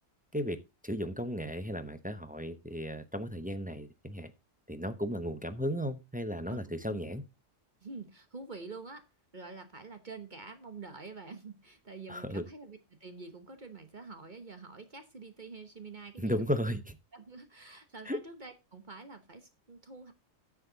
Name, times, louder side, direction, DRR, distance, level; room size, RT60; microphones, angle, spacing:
voice 1, 0.8-4.3 4.7-7.2 12.1-12.4 16.2-17.0 18.1-18.2, equal, 10° right, 9 dB, 0.6 m, -35 dB
voice 2, 6.5-7.0 7.8-9.1 9.3-16.4 17.1-20.1, right 4 dB, 40° right, 8 dB, 1.2 m, -47 dB
10.0 x 7.3 x 4.0 m, 0.25 s
omnidirectional pair, 1.4 m